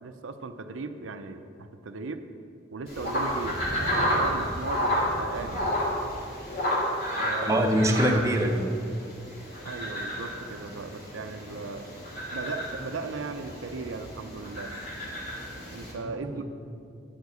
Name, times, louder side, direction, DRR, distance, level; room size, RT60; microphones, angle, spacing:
voice 1, 0.0-2.2 2.7-5.7 7.2-7.6 9.6-11.9 12.3-14.7 15.7-16.4, right 3 dB, 85° right, 8 dB, 0.6 m, -37 dB
sound 1, 2.9-15.9, equal, 50° left, 2.6 m, -31 dB
voice 2, 7.5-8.7 16.0-16.4, equal, 15° right, 1 dB, 0.7 m, -24 dB
9.7 x 4.8 x 7.9 m, 2.4 s
head